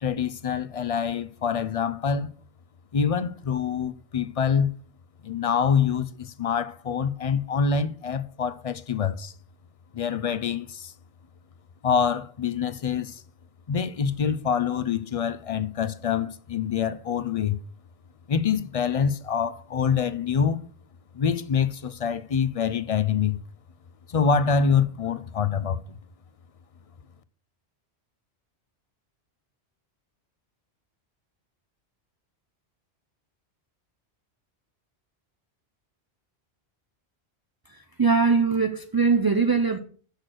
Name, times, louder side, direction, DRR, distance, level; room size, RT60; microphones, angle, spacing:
voice 1, 0.0-2.3 2.9-4.7 5.2-9.3 9.9-10.9 11.8-13.2 13.7-17.6 18.3-20.6 21.1-23.4 24.1-25.8, left 6 dB, 50° left, 0.4 m, -25 dB
voice 2, 37.7-39.8, right 4 dB, 35° right, 0.4 m, -22 dB
6.5 x 6.4 x 6.1 m
omnidirectional pair, 1.1 m